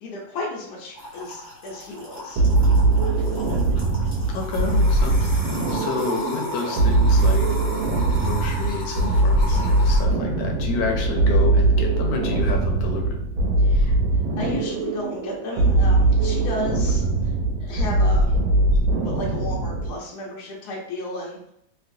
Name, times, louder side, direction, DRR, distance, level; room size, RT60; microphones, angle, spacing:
voice 1, 0.0-2.4 13.6-13.9 14.4-17.0 17.6-18.4 18.9-21.5, left 2 dB, 65° left, -3 dB, 1.3 m, -33 dB
sound 1, 0.9-10.0, left 1 dB, 40° left, 1.3 m, -36 dB
sound 2, 2.4-20.0, right 2 dB, 85° right, 1.4 m, -21 dB
voice 2, 4.3-7.5 8.1-13.1, left 5 dB, 85° left, 2 dB, 1.4 m, -30 dB
3.1 x 3.0 x 2.5 m, 0.76 s
omnidirectional pair, 2.0 m